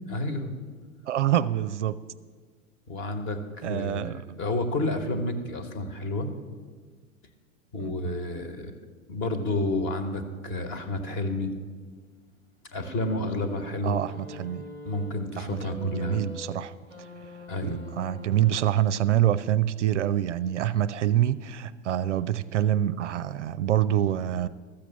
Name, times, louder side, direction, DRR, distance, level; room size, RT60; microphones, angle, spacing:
voice 1, 0.1-0.5 2.9-6.3 7.7-8.7 9.1-11.5 12.7-14.0 14.8-16.2 17.5-17.9, left 2 dB, 30° left, 8 dB, 1.3 m, -30 dB
voice 2, 1.1-2.0 3.6-4.4 7.8-8.2 13.8-14.6 15.4-16.7 17.6-24.5, right 11 dB, 60° right, 14 dB, 0.5 m, -26 dB
sound 1, 12.8-18.9 20.0-20.1, left 1 dB, 85° left, 2.9 m, -44 dB
13.5 x 7.1 x 6.9 m, 1.5 s
figure-of-eight pair, 95°, 40 cm